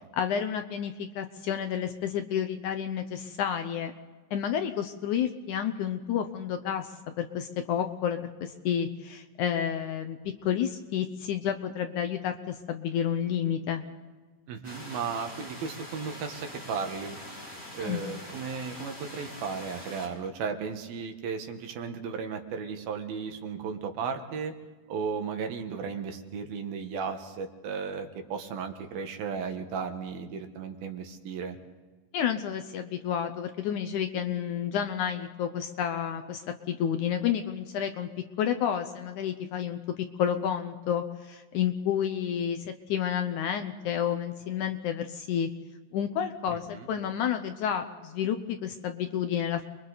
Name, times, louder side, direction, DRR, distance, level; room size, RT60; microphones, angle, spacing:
voice 1, 0.2-3.9 4.3-6.9 7.2-13.8 17.8-18.0 32.1-36.4 36.7-38.1 38.4-42.6 42.9-45.5 45.9-49.6, left 9 dB, 70° left, 7 dB, 2.0 m, -30 dB
voice 2, 14.5-17.2 17.7-24.5 24.9-31.6 46.5-46.9, right 5 dB, 80° right, 5 dB, 3.4 m, -35 dB
sound 1, 14.6-20.1, left 1 dB, 20° left, 4.4 m, -44 dB
30.0 x 22.5 x 4.1 m, 1.4 s
omnidirectional pair, 4.2 m